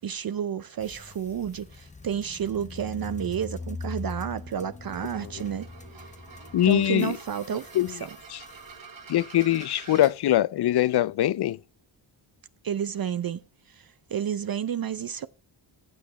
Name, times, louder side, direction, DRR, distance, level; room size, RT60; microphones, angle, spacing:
voice 1, 0.0-5.7 6.6-8.1 12.6-13.4 13.7-15.3, right 8 dB, 45° right, 0.6 m, -31 dB
sound 1, 0.8-8.8, left 3 dB, 15° left, 0.7 m, -42 dB
sound 2, 4.8-10.1, right 5 dB, 70° right, 4.1 m, -47 dB
voice 2, 6.5-7.1 7.7-8.0 8.3-8.4 9.1-11.6, left 13 dB, 55° left, 0.5 m, -23 dB
14.5 x 7.6 x 3.0 m
cardioid pair, 85°, 49 cm